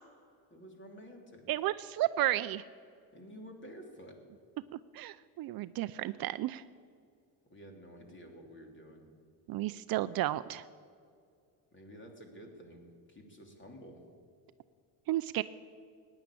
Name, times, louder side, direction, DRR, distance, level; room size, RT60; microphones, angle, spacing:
voice 1, 0.5-1.5 3.1-4.2 7.5-9.1 11.7-14.0, equal, 25° left, 3 dB, 3.1 m, -51 dB
voice 2, 1.5-2.6 4.9-6.6 9.5-10.6 15.1-15.4, right 15 dB, 55° right, 14 dB, 0.5 m, -32 dB
16.0 x 10.0 x 8.5 m, 2.3 s
cardioid pair, 105°, 44 cm